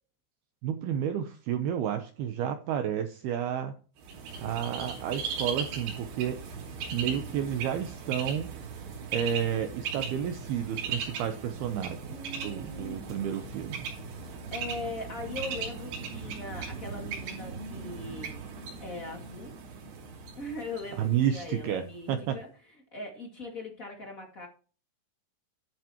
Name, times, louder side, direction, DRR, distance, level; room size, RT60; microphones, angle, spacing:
voice 1, 0.6-3.7 4.4-6.4 6.9-8.5 9.1-13.9 20.9-22.4, right 9 dB, 85° right, 7 dB, 2.2 m, -31 dB
Bird, 4.0-21.8, right 5 dB, 70° right, 5.1 m, -38 dB
voice 2, 7.1-7.8 12.1-13.6 14.5-18.4 18.8-19.5 20.4-22.5 22.9-24.5, left 2 dB, 45° left, 1 dB, 1.0 m, -40 dB
11.5 x 10.5 x 3.0 m, 0.38 s
omnidirectional pair, 5.6 m